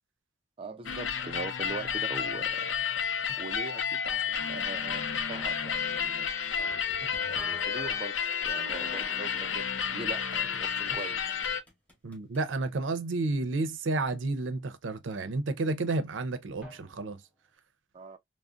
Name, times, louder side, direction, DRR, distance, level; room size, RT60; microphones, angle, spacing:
voice 1, 0.6-2.7 3.4-6.3 7.3-11.4 17.9-18.2, right 3 dB, 30° right, 0.3 m, -42 dB
Drum, 0.8-1.1 3.3-4.4 7.0-8.4 10.9-12.6 16.6-17.6, equal, 5° right, 1.2 m, -54 dB
sound 1, 0.9-11.6, left 7 dB, 85° left, 0.5 m, -31 dB
sound 2, 6.6-11.1 11.4-12.5, right 1 dB, 10° left, 0.8 m, -50 dB
voice 2, 12.0-17.2, right 3 dB, 90° right, 0.5 m, -31 dB
3.7 x 2.1 x 2.3 m
head